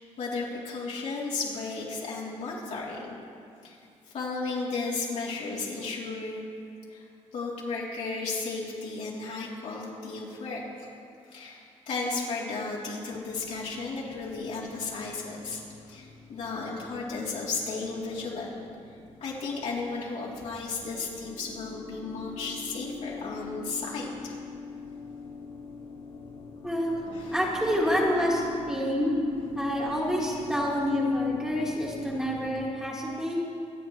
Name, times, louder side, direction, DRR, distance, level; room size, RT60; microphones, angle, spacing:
voice 1, 0.2-3.2 3.6-3.8 4.1-6.4 6.9-7.0 7.3-10.9 11.3-15.6 15.9-18.6 19.2-24.3 27.1-27.4, left 3 dB, 75° left, -5 dB, 3.1 m, -34 dB
sound 1, 13.1-32.7, left 4 dB, 50° left, 1.2 m, -43 dB
voice 2, 26.6-29.1 29.5-33.4, equal, 5° right, -4 dB, 2.1 m, -28 dB
25.0 x 9.6 x 3.1 m, 2.4 s
cardioid pair, 125°, 12 cm